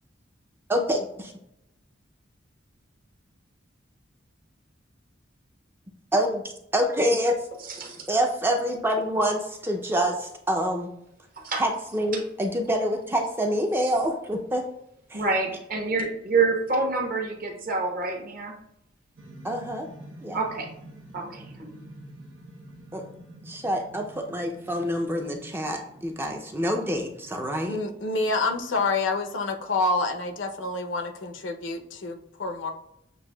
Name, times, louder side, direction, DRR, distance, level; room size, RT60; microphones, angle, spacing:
voice 1, 0.7-1.3 6.1-6.4 6.7-7.4 8.1-10.9 11.6-14.7 15.1-15.2 19.4-19.9 20.2-20.4 22.9-23.0 23.4-27.8, equal, 10° right, 3 dB, 0.4 m, -26 dB
voice 2, 7.7-8.1 11.4-11.6 15.1-18.5 20.3-20.7 21.1-21.7, right 3 dB, 50° right, 1 dB, 0.9 m, -27 dB
sound 1, 19.2-27.6, right 1 dB, 90° right, 0.9 m, -48 dB
voice 3, 27.7-32.7, left 3 dB, 75° left, 4 dB, 0.6 m, -28 dB
7.5 x 2.6 x 2.2 m, 0.80 s
head